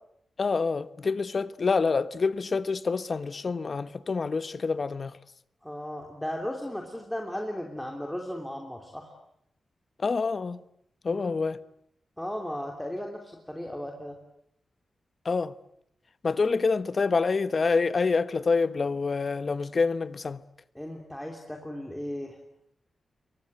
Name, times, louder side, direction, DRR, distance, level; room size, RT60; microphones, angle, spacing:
voice 1, 0.4-5.1 10.0-10.6 11.0-11.6 15.2-15.5 16.2-20.4, left 4 dB, 45° left, 1.1 m, -27 dB
voice 2, 5.6-9.1 11.1-11.4 12.2-14.2 20.7-22.4, equal, 5° left, 3.2 m, -36 dB
28.0 x 24.0 x 7.9 m
wide cardioid pair, 115°, 0 cm